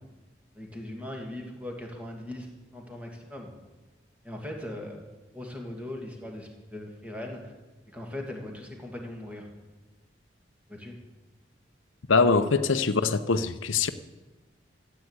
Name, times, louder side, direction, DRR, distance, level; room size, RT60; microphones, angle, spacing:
voice 1, 0.6-2.5 2.7-3.5 4.2-5.0 5.3-7.4 7.9-9.5 10.7-10.9 12.3-12.4, left 1 dB, 5° right, 2.4 m, -39 dB
voice 2, 12.1-13.9, left 4 dB, 90° left, 0.7 m, -23 dB
14.0 x 9.1 x 8.2 m
head